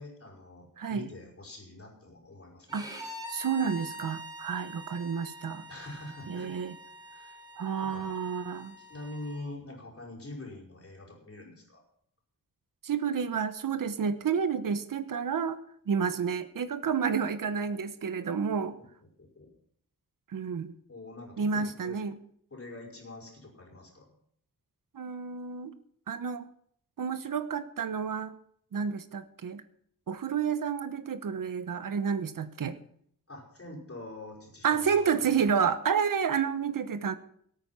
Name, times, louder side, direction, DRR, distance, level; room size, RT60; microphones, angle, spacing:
voice 1, 0.0-2.8 5.7-6.6 7.1-7.4 7.8-8.1 8.8-11.8 18.8-18.9 19.2-19.5 20.9-22.0 22.5-24.1 33.3-35.4, left 2 dB, 40° left, -1 dB, 4.9 m, -45 dB
voice 2, 0.8-1.1 2.7-2.9 3.3-5.6 6.3-6.7 7.6-8.7 12.8-15.6 15.9-18.8 20.3-20.7 21.4-22.2 24.9-25.7 26.1-26.5 27.0-28.4 28.7-29.6 30.1-32.8 34.6-37.1, right 6 dB, 65° right, 12 dB, 1.1 m, -30 dB
Bowed string instrument, 2.7-9.4, equal, 10° right, 3.6 m, -45 dB
18.0 x 8.9 x 5.6 m, 0.65 s
wide cardioid pair, 130°, 35 cm